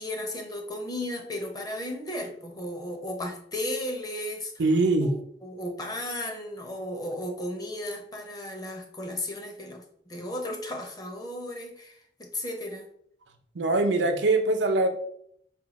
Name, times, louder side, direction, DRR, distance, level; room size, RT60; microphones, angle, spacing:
voice 1, 0.0-4.5 5.0-5.1 5.4-12.9, left 1 dB, 20° left, 3 dB, 0.7 m, -35 dB
voice 2, 4.6-5.1 13.5-14.9, right 2 dB, 85° right, 6 dB, 0.6 m, -22 dB
4.4 x 2.2 x 4.0 m, 0.66 s
head